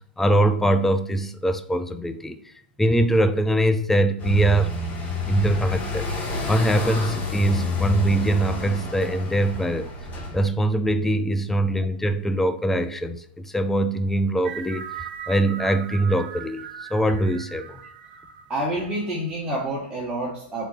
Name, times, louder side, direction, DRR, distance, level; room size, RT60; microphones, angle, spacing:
voice 1, 0.2-2.4 2.8-4.7 5.3-6.1 6.5-9.9 10.3-17.8, right 1 dB, 5° left, 0.3 m, -22 dB
sound 1, 4.2-10.4, left 3 dB, 25° left, 1.1 m, -29 dB
sound 2, 14.4-19.2, right 8 dB, 65° right, 0.8 m, -39 dB
voice 2, 18.5-20.7, right 1 dB, 15° right, 1.1 m, -28 dB
4.3 x 3.4 x 3.1 m
hypercardioid pair, 125°, 6 cm